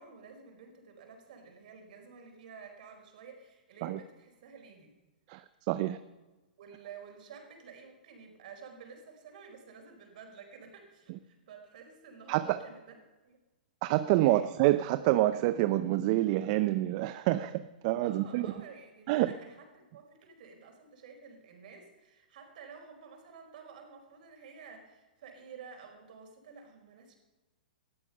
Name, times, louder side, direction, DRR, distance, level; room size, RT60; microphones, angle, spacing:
voice 1, 0.0-4.9 6.6-13.0 13.2-13.4 14.2-14.5 18.0-27.1, right 5 dB, 60° right, 3 dB, 4.7 m, -51 dB
voice 2, 5.3-6.0 12.3-12.6 13.8-18.5 19.1-19.3, right 15 dB, 45° right, 12 dB, 0.6 m, -27 dB
19.5 x 13.5 x 5.5 m, 1.2 s
hypercardioid pair, 120°, 5 cm